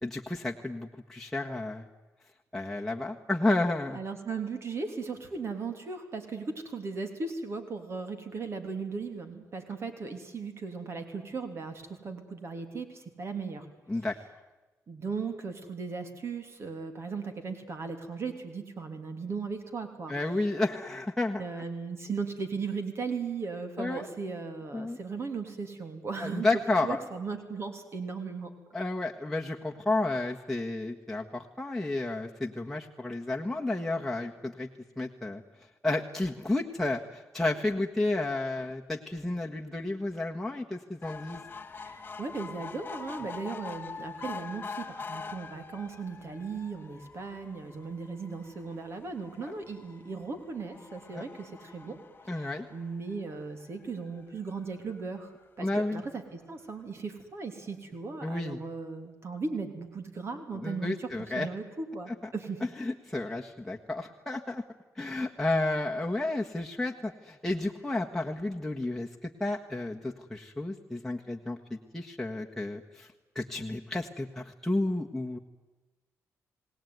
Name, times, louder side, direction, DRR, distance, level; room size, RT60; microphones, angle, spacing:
voice 1, 0.0-1.9 2.5-4.0 13.9-14.2 20.1-21.4 23.8-24.0 24.7-25.0 26.2-27.0 28.7-34.7 35.0-41.4 51.1-51.2 52.3-52.7 55.6-56.0 58.2-58.6 60.5-61.5 62.1-62.3 62.8-64.6 64.9-75.4, left 2 dB, 5° left, -1 dB, 1.6 m, -31 dB
voice 2, 3.9-13.7 14.9-20.1 21.4-28.5 41.8-52.0 52.3-61.1 61.3-62.6, right 4 dB, 50° right, 7 dB, 3.2 m, -37 dB
sound 1, 41.0-53.6 54.2-54.3 54.6-54.7 54.9-55.0, left 5 dB, 30° left, 2.0 m, -44 dB
28.0 x 18.5 x 9.6 m, 1.2 s
cardioid pair, 90°, 6 cm